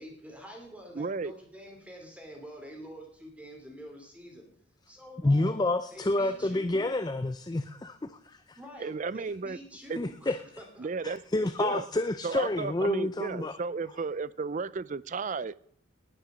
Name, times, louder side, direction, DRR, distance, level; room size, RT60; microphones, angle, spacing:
voice 1, 0.0-4.5 4.9-5.5 5.9-6.9 8.6-10.9, equal, 5° right, 1 dB, 2.9 m, -47 dB
voice 2, 1.0-1.3 8.8-9.6 9.9-10.0 10.8-11.2 11.6-11.9 12.2-15.6, right 4 dB, 40° right, 19 dB, 0.4 m, -33 dB
voice 3, 5.2-8.6 10.0-10.4 11.0-13.6, left 2 dB, 20° left, 11 dB, 0.4 m, -29 dB
19.0 x 6.7 x 6.2 m, 0.65 s
head